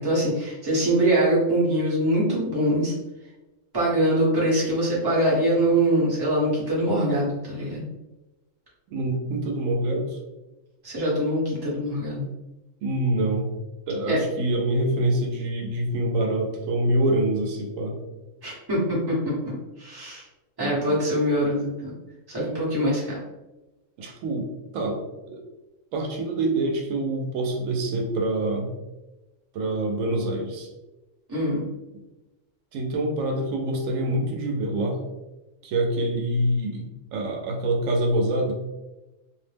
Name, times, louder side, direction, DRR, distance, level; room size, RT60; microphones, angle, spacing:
voice 1, 0.0-2.9 3.7-7.8 10.8-12.3 14.1-14.2 18.4-19.4 19.8-20.2 20.6-21.9 22.3-23.2 31.3-31.7, right 1 dB, 20° right, -7 dB, 0.9 m, -23 dB
voice 2, 8.9-10.2 12.8-13.5 13.9-18.0 20.6-21.0 24.0-24.5 24.7-25.4 25.9-28.7 29.5-30.7 32.7-35.0 35.6-38.5, right 1 dB, 85° right, 2 dB, 1.0 m, -26 dB
2.5 x 2.1 x 3.2 m, 1.0 s
omnidirectional pair, 1.3 m